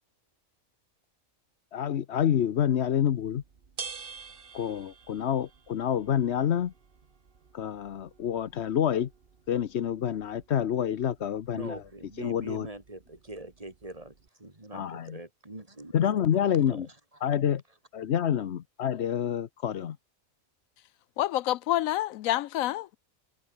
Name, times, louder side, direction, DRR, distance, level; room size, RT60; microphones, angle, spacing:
voice 1, 1.7-3.4 4.5-6.7 7.5-9.1 9.5-11.8 12.2-12.7 14.7-15.2 15.9-16.9 17.2-17.6 17.9-20.0, left 9 dB, 60° left, 1.0 m, -27 dB
sound 1, 2.8-14.3, right 5 dB, 45° right, 1.4 m, -49 dB
voice 2, 11.5-14.1 14.4-16.1 16.6-16.9, right 2 dB, 25° right, 2.9 m, -42 dB
voice 3, 21.2-23.0, left 14 dB, 85° left, 1.0 m, -28 dB
omnidirectional pair, 1.4 m